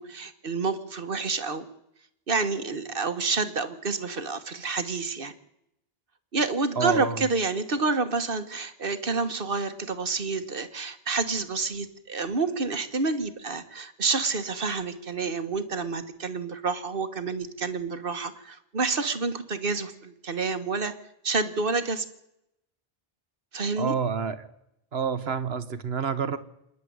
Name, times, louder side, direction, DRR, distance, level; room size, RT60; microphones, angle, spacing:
voice 1, 0.1-1.6 2.3-5.3 6.3-20.9 21.2-22.0 23.5-23.9, right 4 dB, 60° right, 10 dB, 1.6 m, -28 dB
voice 2, 6.8-7.2 23.8-24.5 24.9-26.4, right 6 dB, 80° right, 12 dB, 1.5 m, -28 dB
27.0 x 10.5 x 9.5 m, 0.82 s
omnidirectional pair, 1.0 m